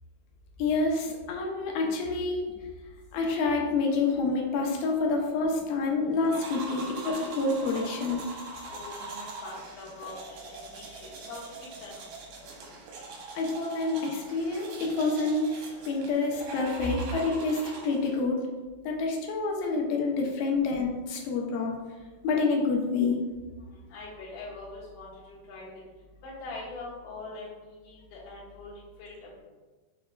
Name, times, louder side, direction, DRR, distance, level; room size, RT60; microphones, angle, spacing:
voice 1, 0.6-2.5 3.1-8.2 13.4-15.5 15.9-18.5 18.9-21.7 22.2-23.2, left 3 dB, 80° left, 0 dB, 2.3 m, -28 dB
sound 1, 6.2-18.2, right 3 dB, 80° right, 1.8 m, -42 dB
voice 2, 8.7-10.2 10.5-11.4 11.8-12.1 23.9-25.7 26.2-27.5 27.9-28.7 29.0-29.3, left 3 dB, 60° left, -7 dB, 2.5 m, -43 dB
6.6 x 3.3 x 2.2 m, 1.3 s
omnidirectional pair, 4.3 m